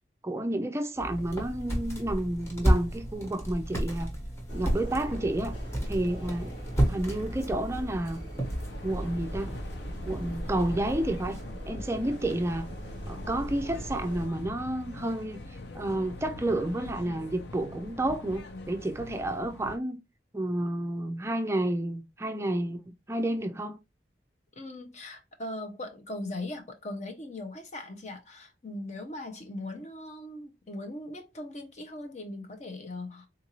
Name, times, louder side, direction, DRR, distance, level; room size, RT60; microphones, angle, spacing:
voice 1, 0.2-4.1 4.5-5.5 5.9-6.5 6.8-8.2 8.8-9.6 10.1-11.4 11.7-12.7 13.1-15.4 15.7-20.0 20.3-23.8, right 1 dB, 15° right, 0.4 m, -30 dB
sound 1, 1.0-11.5, right 1 dB, 15° left, 1.1 m, -32 dB
sound 2, 4.5-14.3, equal, 90° left, 1.9 m, -41 dB
sound 3, 8.4-19.8, left 2 dB, 70° left, 0.6 m, -43 dB
voice 2, 24.5-33.3, left 1 dB, 40° left, 0.8 m, -39 dB
3.8 x 2.6 x 3.0 m
head